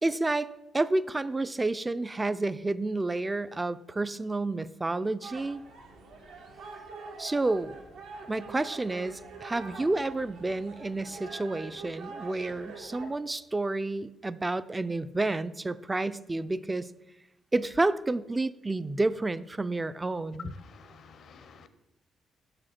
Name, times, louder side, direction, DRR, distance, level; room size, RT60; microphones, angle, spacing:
voice 1, 0.0-0.5 0.7-5.6 7.2-7.7 8.3-16.9 17.5-20.6, right 2 dB, 20° right, 15 dB, 0.3 m, -30 dB
sound 1, 5.2-13.1, right 4 dB, 90° right, 1.2 m, -45 dB
voice 2, 20.7-21.7, left 4 dB, 60° left, 11 dB, 0.5 m, -52 dB
6.1 x 4.9 x 5.8 m, 0.91 s
cardioid pair, 90°, 0 cm